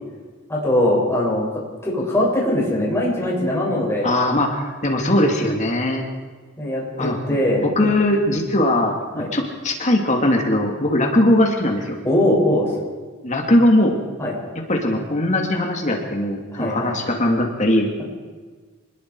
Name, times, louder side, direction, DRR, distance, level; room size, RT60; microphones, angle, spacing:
voice 1, 0.5-1.4 1.8-4.1 6.6-7.6 9.1-9.3 12.0-12.7 14.2-14.3 16.5-16.9, left 1 dB, 15° left, -4 dB, 6.8 m, -21 dB
voice 2, 4.0-6.0 7.0-7.2 7.6-12.0 13.2-14.0 14.7-17.9, left 1 dB, 35° left, 2 dB, 2.7 m, -20 dB
26.5 x 20.5 x 4.8 m, 1.4 s
head